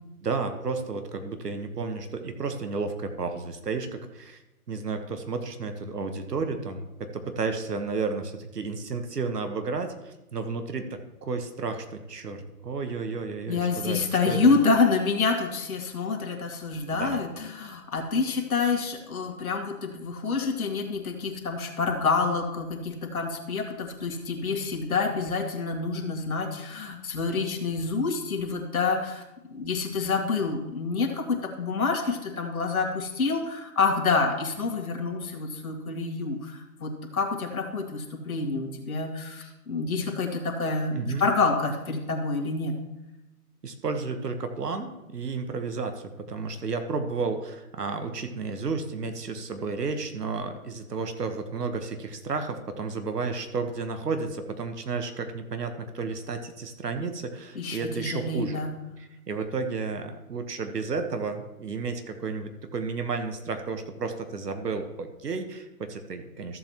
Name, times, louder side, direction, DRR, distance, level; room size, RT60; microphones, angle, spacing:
voice 1, 0.2-4.4 4.7-14.5 16.9-17.2 40.9-41.2 43.6-58.6 59.3-66.6, right 4 dB, 80° right, 7 dB, 1.4 m, -32 dB
voice 2, 13.5-29.2 29.5-42.7 57.6-58.7, left 4 dB, 65° left, 2 dB, 1.9 m, -27 dB
14.0 x 7.6 x 3.0 m, 0.95 s
hypercardioid pair, 150°, 47 cm